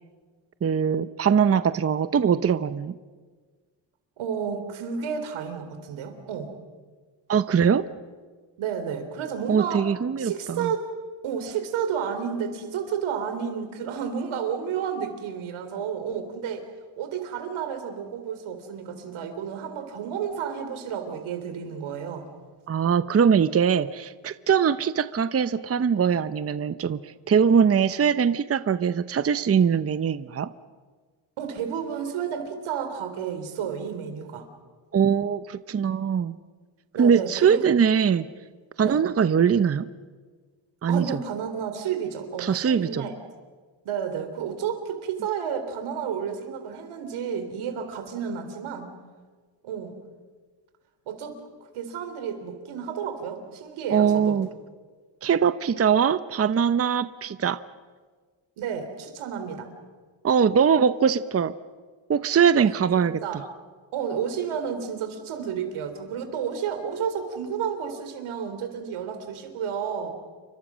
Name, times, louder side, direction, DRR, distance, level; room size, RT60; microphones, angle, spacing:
voice 1, 0.6-2.9 7.3-7.8 9.5-10.7 22.7-30.5 34.9-36.3 37.0-38.2 38.8-39.9 40.8-41.0 42.4-43.1 53.9-54.5 55.2-57.6 60.2-61.5 62.1-63.2, right 7 dB, 30° right, 13 dB, 0.8 m, -22 dB
voice 2, 4.2-6.5 8.6-9.8 10.2-10.9 11.2-16.6 17.0-22.3 31.4-34.5 36.9-37.7 38.8-39.0 40.9-43.2 43.8-48.9 49.6-49.9 51.1-51.4 51.7-54.4 58.6-59.7 62.9-63.4 63.9-70.1, right 7 dB, 90° right, 7 dB, 3.9 m, -31 dB
29.5 x 24.0 x 6.3 m, 1.5 s
cardioid pair, 100°, 47 cm